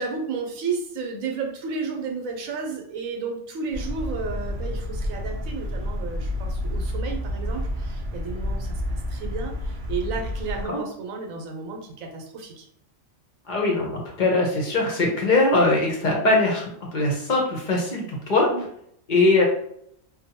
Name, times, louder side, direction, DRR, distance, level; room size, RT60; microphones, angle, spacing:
voice 1, 0.0-12.7 18.5-18.7, right 4 dB, 85° right, 2 dB, 1.0 m, -32 dB
sound 1, 3.7-10.7, left 1 dB, 65° right, 0.5 m, -29 dB
voice 2, 13.5-18.5 19.1-19.4, left 2 dB, 50° left, -1 dB, 0.6 m, -21 dB
2.6 x 2.2 x 2.7 m, 0.71 s
omnidirectional pair, 1.4 m